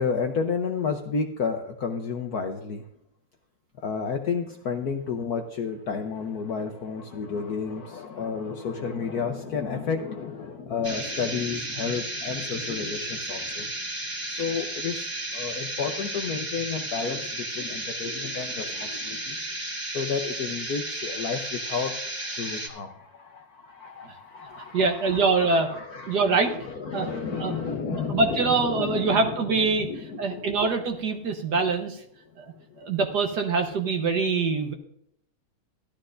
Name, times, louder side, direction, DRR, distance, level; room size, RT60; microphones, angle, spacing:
voice 1, 0.0-2.8 3.8-13.8 14.3-19.4 19.9-30.7 32.9-33.0, left 5 dB, 60° left, 4 dB, 1.0 m, -31 dB
sound 1, 10.8-22.7, right 1 dB, 25° right, 1.6 m, -33 dB
voice 2, 24.7-25.7 26.1-26.5 26.9-27.1 27.4-27.5 27.9-29.9 30.2-32.0 32.4-32.5 32.8-34.7, right 4 dB, 55° right, 4 dB, 1.4 m, -24 dB
15.0 x 12.0 x 2.6 m, 0.72 s
omnidirectional pair, 2.4 m